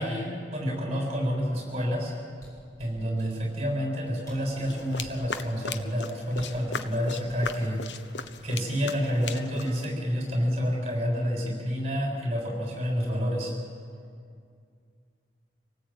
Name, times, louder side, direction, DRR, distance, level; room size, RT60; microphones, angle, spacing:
voice 1, 0.0-2.1 2.8-7.8 8.4-13.5, equal, 35° right, 0 dB, 7.1 m, -29 dB
sound 1, 2.3-3.3 4.0-4.1 4.2-5.3 6.3-6.7 7.3-7.5 8.2-8.7 9.0-9.3, equal, 20° left, 7.5 m, -50 dB
sound 2, 4.7-9.9, left 5 dB, 85° left, 1.1 m, -38 dB
26.5 x 18.5 x 9.0 m, 2.3 s
head